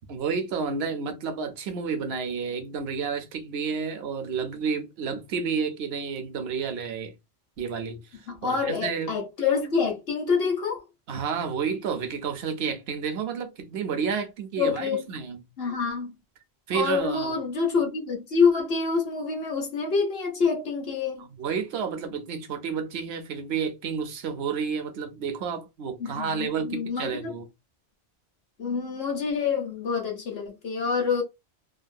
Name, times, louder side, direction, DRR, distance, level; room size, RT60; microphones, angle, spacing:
voice 1, 0.1-7.2 7.6-9.2 11.1-15.4 16.7-17.4 21.2-27.5, right 6 dB, 75° right, 0.9 m, -30 dB
voice 2, 8.3-10.8 14.6-15.1 15.6-16.1 16.7-21.3 26.0-27.3 28.6-31.2, left 5 dB, 65° left, 1.2 m, -26 dB
3.0 x 2.3 x 2.5 m
omnidirectional pair, 1.1 m